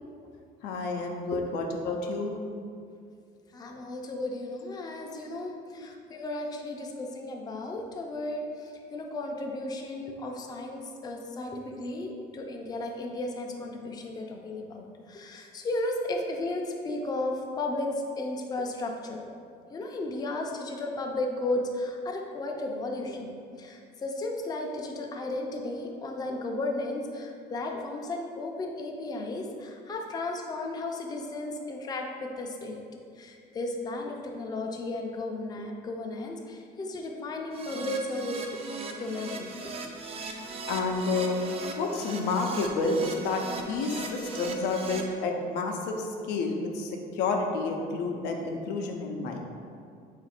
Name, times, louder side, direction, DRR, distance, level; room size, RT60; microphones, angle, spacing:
voice 1, 0.6-2.4 5.8-5.9 40.7-41.4 41.8-49.4, left 3 dB, 90° left, 2 dB, 0.5 m, -30 dB
voice 2, 3.5-17.9 18.2-19.3 19.7-32.8 33.2-38.6 39.0-39.5, left 2 dB, 25° left, 1 dB, 0.4 m, -34 dB
Keyboard (musical), 37.5-45.0, right 4 dB, 35° right, 0.4 m, -39 dB
3.7 x 2.5 x 4.2 m, 2.3 s
cardioid pair, 110°, 17 cm